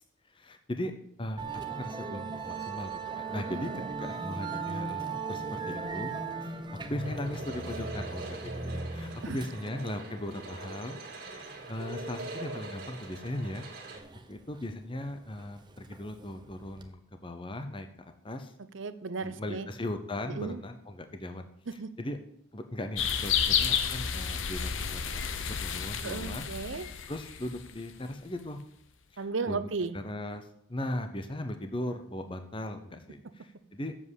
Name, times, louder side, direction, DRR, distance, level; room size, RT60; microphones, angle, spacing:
voice 1, 0.3-0.9 1.2-1.4 1.7-3.7 4.0-11.0 11.7-13.6 14.3-17.9 18.2-18.5 19.2-22.2 22.5-26.5 26.8-28.6 29.1-29.6 29.9-33.9, left 1 dB, 25° left, 7 dB, 0.7 m, -38 dB
Musical instrument, 1.4-16.9, right 4 dB, 20° right, 0.8 m, -39 dB
voice 2, 3.5-3.9 9.2-9.4 18.7-19.7 20.4-20.6 21.8-21.9 26.0-26.9 29.2-29.9, right 4 dB, 65° right, 13 dB, 0.7 m, -35 dB
sound 1, 7.0-14.0, right 2 dB, 50° right, 2.4 m, -43 dB
sound 2, 23.0-28.0, left 7 dB, 65° left, 0.9 m, -31 dB
7.7 x 7.4 x 8.2 m, 0.72 s
head